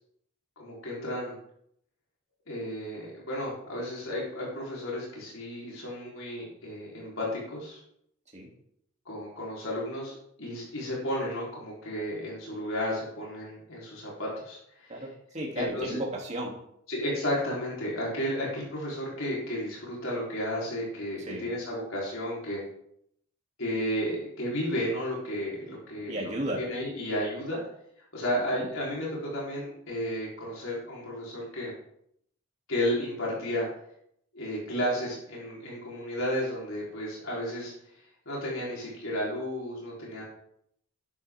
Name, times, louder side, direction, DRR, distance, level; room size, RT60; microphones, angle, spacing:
voice 1, 0.6-1.4 2.5-7.8 9.1-14.9 15.6-15.9 16.9-22.6 23.6-26.3 26.6-27.6 28.1-31.7 32.7-33.7 34.3-37.7 38.3-40.2, equal, 70° left, -5 dB, 4.1 m, -33 dB
voice 2, 14.9-16.5 21.2-21.5 26.1-26.6 28.5-28.7 40.2-40.3, right 1 dB, 30° right, -2 dB, 3.0 m, -34 dB
11.5 x 11.5 x 3.7 m, 0.72 s
head